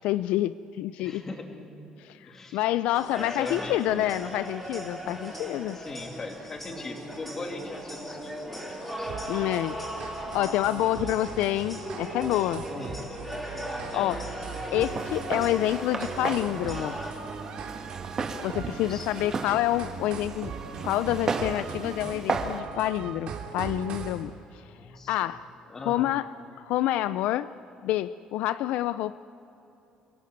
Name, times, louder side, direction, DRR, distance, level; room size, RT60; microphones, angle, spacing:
voice 1, 0.0-1.2 2.0-5.8 9.3-12.7 13.9-14.2 14.7-17.0 18.4-20.5 20.8-24.6 25.1-25.4 25.8-26.3 26.6-27.5 27.8-29.2, left 14 dB, 80° left, 14 dB, 0.5 m, -28 dB
voice 2, 1.0-1.7 2.2-2.6 3.1-4.1 5.7-9.1 12.7-13.1 13.9-14.2 18.9-19.1 24.7-25.3 25.7-26.1, left 3 dB, 25° left, 3 dB, 2.8 m, -40 dB
sound 1, 2.9-17.1, equal, 5° left, 4.5 m, -38 dB
sound 2, 9.1-24.2, right 6 dB, 55° right, 3.0 m, -39 dB
Walk footsteps, 14.8-22.6, right 4 dB, 30° right, 1.8 m, -35 dB
29.5 x 17.5 x 9.4 m, 2.8 s
cardioid pair, 155°, 2 cm